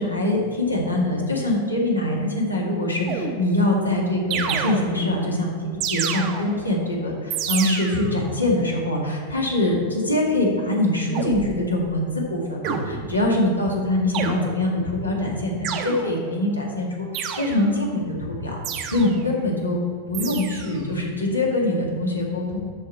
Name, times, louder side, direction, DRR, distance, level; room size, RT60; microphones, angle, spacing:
voice 1, 0.0-5.5 5.8-18.6 18.9-19.8 20.1-22.6, left 1 dB, 80° left, -1 dB, 1.9 m, -23 dB
sound 1, 3.1-3.7 4.3-5.2 5.8-6.7 7.3-8.2 11.1-11.6 12.6-13.4 14.1-14.8 15.6-16.4 17.1-17.8 18.6-19.3 20.1-20.8, right 7 dB, 40° right, 0.9 m, -29 dB
12.5 x 4.7 x 4.5 m, 2.2 s
figure-of-eight pair, 90°, 0 cm